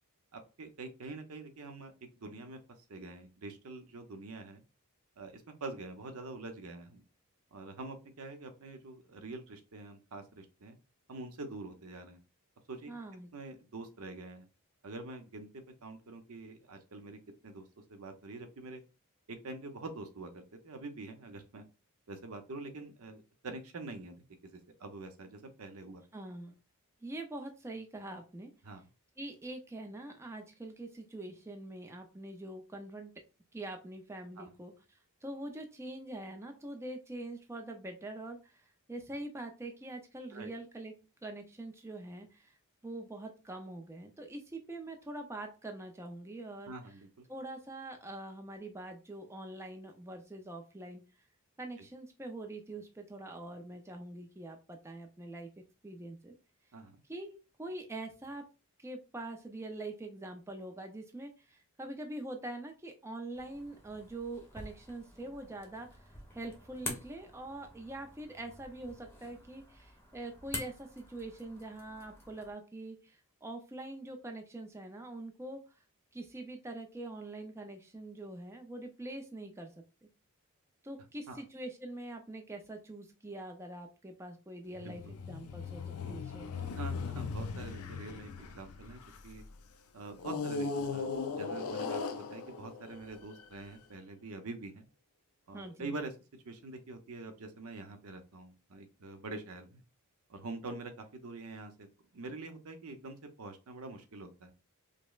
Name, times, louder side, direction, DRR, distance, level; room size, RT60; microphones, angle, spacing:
voice 1, 0.3-2.6 2.9-4.6 5.2-7.0 7.5-10.8 11.1-12.2 12.7-12.9 13.3-14.5 14.8-15.5 15.8-18.8 19.3-21.6 22.1-24.2 24.5-26.0 28.6-28.9 34.4-34.5 40.3-40.5 46.7-47.3 56.7-57.0 81.3-81.4 84.8-84.9 86.8-89.4 89.9-94.9 95.5-96.1 96.4-99.8 100.3-101.9 102.1-104.5, right 3 dB, 70° right, 7 dB, 0.7 m, -45 dB
voice 2, 12.9-13.3 26.1-26.5 27.0-28.5 29.2-33.1 33.5-40.9 41.2-42.6 42.8-46.7 47.3-51.0 51.6-55.5 55.8-56.3 57.1-58.4 58.8-66.1 66.3-75.6 76.1-79.7 80.0-80.1 80.8-86.7 95.5-95.9, right 2 dB, 10° right, 4 dB, 0.4 m, -44 dB
sound 1, 63.3-72.5, left 2 dB, 10° left, 0.8 m, -47 dB
sound 2, 84.7-89.4 90.2-93.6, left 4 dB, 75° left, 0.4 m, -38 dB
5.1 x 2.0 x 2.3 m, 0.31 s
head